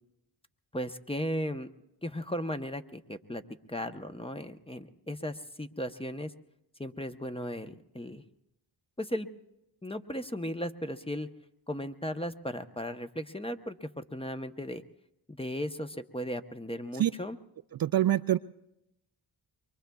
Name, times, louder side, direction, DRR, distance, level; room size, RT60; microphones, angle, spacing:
voice 1, 0.7-1.7 2.0-3.4 3.7-6.3 6.8-8.2 9.0-9.3 9.8-11.3 11.7-14.8 15.3-17.4, equal, 10° left, 8 dB, 0.8 m, -36 dB
voice 2, 17.8-18.4, right 12 dB, 50° right, 11 dB, 0.4 m, -25 dB
23.5 x 23.5 x 2.3 m, 0.86 s
supercardioid pair, 40°, 48 cm